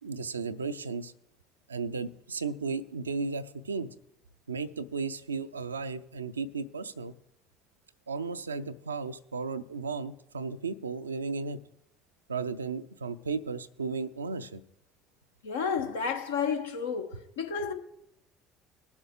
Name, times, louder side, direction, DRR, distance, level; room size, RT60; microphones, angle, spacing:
voice 1, 0.0-1.1 1.7-3.9 4.5-7.1 8.1-11.6 12.3-14.6, right 4 dB, 80° right, 0.5 m, -34 dB
voice 2, 15.4-17.7, left 6 dB, 75° left, 1.0 m, -31 dB
20.5 x 7.1 x 3.6 m
figure-of-eight pair, 60°, 0 cm